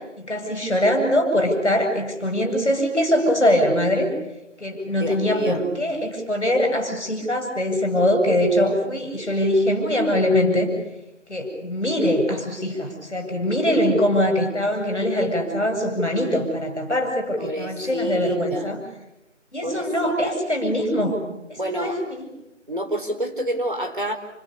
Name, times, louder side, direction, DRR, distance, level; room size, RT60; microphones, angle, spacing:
voice 1, 0.2-4.1 4.6-10.7 11.3-18.8 19.5-21.2 21.5-22.2, left 1 dB, ahead, -32 dB, 4.5 m, -22 dB
voice 2, 4.9-5.6 17.4-18.7 19.6-20.3 21.6-22.0 22.7-24.1, right 1 dB, 40° right, 5 dB, 4.4 m, -29 dB
28.5 x 26.5 x 7.0 m, 0.91 s
figure-of-eight pair, 180°, 37 cm